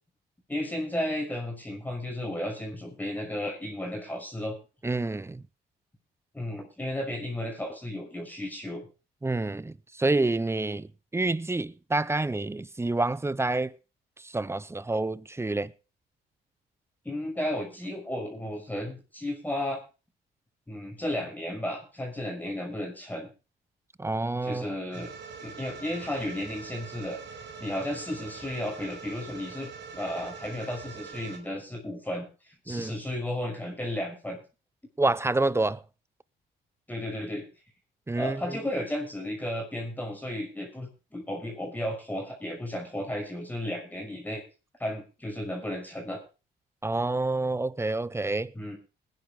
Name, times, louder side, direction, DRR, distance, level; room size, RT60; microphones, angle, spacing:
voice 1, 0.5-4.6 6.3-8.8 17.0-19.8 20.7-23.3 24.4-25.1 25.4-34.4 36.9-37.4 38.2-44.4 44.8-46.2 48.5-48.8, left 1 dB, 10° left, 6.0 m, -34 dB
voice 2, 4.8-5.4 9.2-13.7 14.2-15.7 24.0-24.7 32.7-32.9 35.0-35.8 38.1-38.6 46.8-48.5, right 2 dB, 15° right, 0.7 m, -28 dB
sound 1, 24.9-31.4, right 5 dB, 65° right, 4.3 m, -43 dB
20.0 x 10.5 x 3.7 m
cardioid pair, 90°, 20 cm